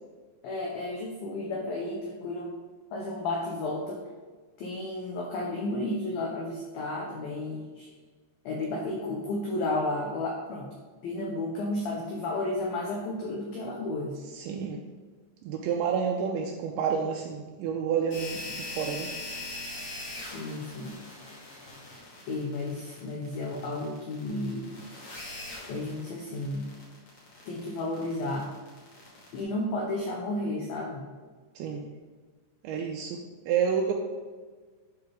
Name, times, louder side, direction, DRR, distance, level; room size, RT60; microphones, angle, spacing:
voice 1, 0.4-2.5 2.9-4.0 4.6-7.9 8.5-10.7 11.0-14.2 20.2-21.0 21.3-21.4 22.3-24.8 25.6-26.7 27.5-28.5 29.3-31.1, left 2 dB, 85° left, -1 dB, 2.0 m, -32 dB
voice 2, 14.3-14.8 15.4-19.1 31.6-31.9 32.6-33.9, right 7 dB, 80° right, 1 dB, 2.7 m, -29 dB
sound 1, 18.1-29.4, left 2 dB, 40° left, 2.3 m, -41 dB
11.5 x 5.7 x 3.5 m, 1.4 s
omnidirectional pair, 5.6 m